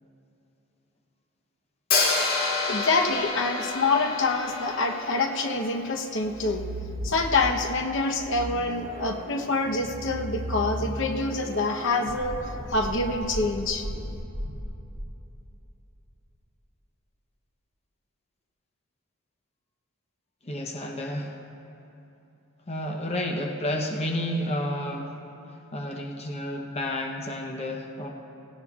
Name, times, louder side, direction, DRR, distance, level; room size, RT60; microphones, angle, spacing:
Hi-hat, 1.9-5.9, left 3 dB, 80° left, 2.5 m, -28 dB
voice 1, 2.7-6.6 7.0-12.4 12.7-13.8, left 3 dB, 55° left, 5 dB, 0.9 m, -26 dB
sound 1, 6.2-7.6 8.1-15.1, right 1 dB, 40° right, 1.8 m, -36 dB
voice 2, 20.4-21.4 22.7-25.2 25.7-28.1, left 1 dB, 30° left, 1 dB, 0.8 m, -31 dB
17.5 x 17.5 x 2.4 m, 2.9 s
head